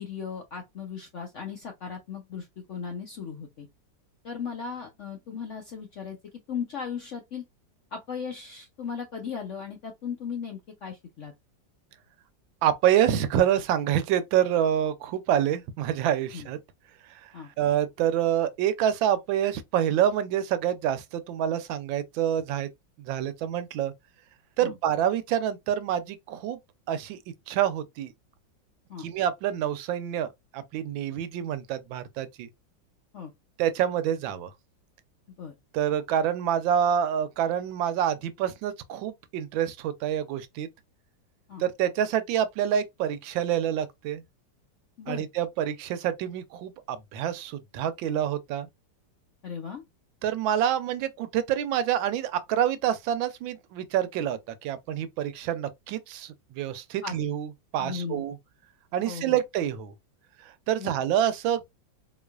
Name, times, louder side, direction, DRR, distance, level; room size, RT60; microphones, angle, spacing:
voice 1, 0.0-3.7 4.2-6.2 6.5-7.4 7.9-11.3 16.3-16.5 17.3-17.5 24.6-24.7 28.9-29.1 33.1-33.3 35.4-35.5 41.5-41.6 45.0-45.2 49.4-49.8 57.0-57.2 57.8-58.2 59.0-59.4 60.8-60.9, left 6 dB, 70° left, 0.7 m, -37 dB
voice 2, 12.6-16.6 17.2-17.3 17.6-22.7 23.0-23.9 24.6-26.6 26.9-27.2 27.5-28.1 29.0-32.5 33.6-34.5 35.7-40.7 41.6-44.2 45.1-48.7 50.2-58.4 58.9-59.9 60.7-61.7, right 10 dB, 90° right, 1.4 m, -27 dB
3.8 x 3.1 x 2.3 m
omnidirectional pair, 2.0 m